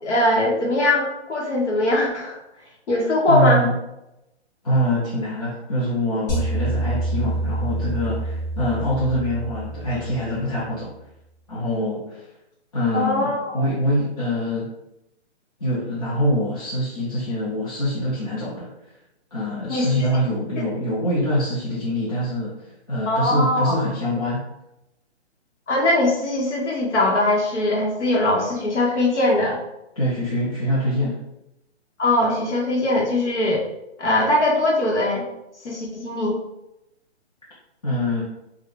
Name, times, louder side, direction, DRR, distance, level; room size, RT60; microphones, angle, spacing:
voice 1, 0.0-2.4 2.9-3.6 12.9-13.6 19.7-19.9 23.1-23.8 25.7-29.6 32.0-33.6 34.0-35.2 35.6-36.4, left 1 dB, 80° left, -2 dB, 1.0 m, -21 dB
voice 2, 3.3-3.7 4.6-10.9 11.5-12.2 12.7-14.7 15.6-18.7 19.3-24.5 30.0-31.2 37.8-38.2, equal, 35° left, -8 dB, 0.6 m, -24 dB
sound 1, 6.3-10.6, right 2 dB, 50° left, 1.2 m, -27 dB
2.4 x 2.3 x 3.6 m, 0.88 s
hypercardioid pair, 165°, 35 cm